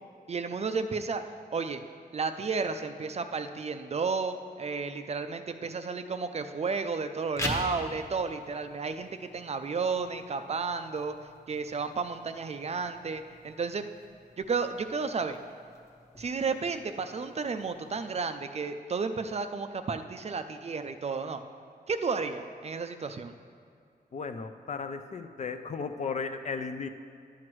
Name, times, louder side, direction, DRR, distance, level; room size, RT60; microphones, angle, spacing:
voice 1, 0.3-1.2 1.5-1.8 2.1-11.2 11.5-13.9 14.4-15.4 16.2-21.4 21.9-23.4, right 4 dB, 40° right, 9 dB, 0.4 m, -32 dB
sound 1, 7.2-18.2, left 1 dB, 15° left, 0.9 m, -44 dB
voice 2, 24.1-26.9, left 5 dB, 45° left, 8 dB, 0.4 m, -35 dB
11.5 x 7.7 x 3.1 m, 2.3 s
wide cardioid pair, 135°, 17 cm